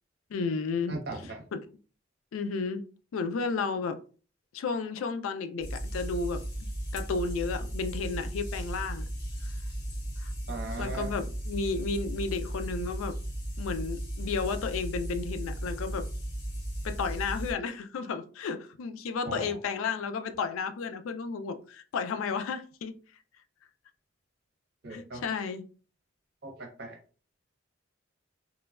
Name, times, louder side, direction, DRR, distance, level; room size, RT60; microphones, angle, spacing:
voice 1, 0.3-1.0 1.5-1.7 2.3-2.8 3.1-4.0 4.5-6.4 6.9-9.1 9.4-9.5 10.2-10.3 10.8-13.2 13.6-16.1 16.8-23.0 24.9-25.6, left 4 dB, 85° left, 0.3 m, -32 dB
voice 2, 0.9-1.4 10.5-11.1 19.2-19.6 24.8-25.2 26.4-27.0, right 2 dB, 50° right, 0.8 m, -38 dB
sound 1, 5.6-17.5, right 1 dB, 50° left, 0.9 m, -36 dB
3.0 x 2.2 x 2.3 m
head